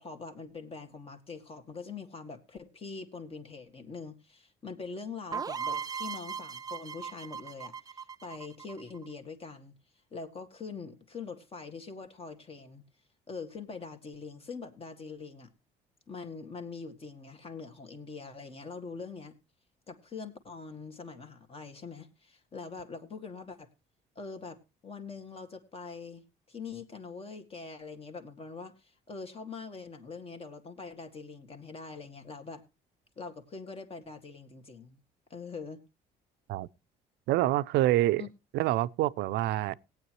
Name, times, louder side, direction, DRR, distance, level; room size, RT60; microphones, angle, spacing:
voice 1, 0.0-9.7 10.1-12.8 13.3-15.5 16.1-19.3 19.9-23.7 24.2-24.6 24.8-32.6 33.2-35.0 35.3-35.8 38.2-38.3, left 4 dB, 35° left, 2.0 m, -43 dB
sound 1, 5.3-9.1, right 7 dB, 20° right, 0.5 m, -38 dB
voice 2, 37.3-38.2 38.5-39.7, right 15 dB, 80° right, 0.5 m, -26 dB
18.5 x 8.9 x 3.1 m
cardioid pair, 110°, 17 cm